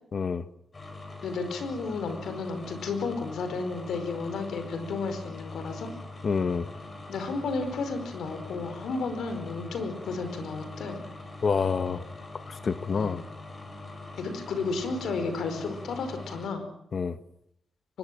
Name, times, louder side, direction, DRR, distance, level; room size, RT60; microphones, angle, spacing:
voice 1, 0.1-0.5 6.2-6.7 11.4-12.0 12.3-13.2 16.9-17.2, left 5 dB, 50° left, 13 dB, 1.2 m, -27 dB
sound 1, 0.7-16.5, left 2 dB, 30° left, 6.9 m, -43 dB
voice 2, 1.2-5.9 7.1-11.0 12.9-13.2 14.2-16.7, left 4 dB, 85° left, 9 dB, 4.9 m, -32 dB
23.5 x 22.0 x 7.7 m, 0.77 s
cardioid pair, 110°, 0 cm